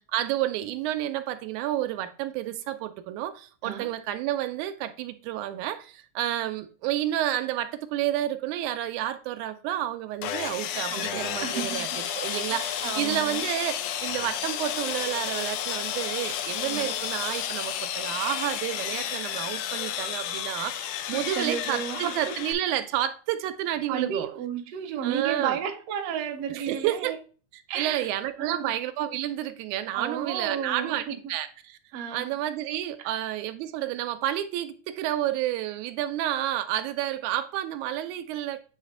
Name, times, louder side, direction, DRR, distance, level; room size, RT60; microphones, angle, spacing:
voice 1, 0.1-24.3 25.0-25.6 26.5-27.1 27.5-31.8 32.1-38.6, right 12 dB, 85° right, 2.0 m, -30 dB
Sawing, 10.2-22.5, left 10 dB, 85° left, 2.1 m, -32 dB
voice 2, 10.9-11.9 12.5-13.5 16.6-17.0 21.1-22.3 23.9-27.2 27.7-28.1 28.4-28.8 29.9-31.3 31.9-32.3 33.0-33.2, right 8 dB, 70° right, 1.6 m, -33 dB
7.9 x 3.3 x 3.8 m
omnidirectional pair, 3.4 m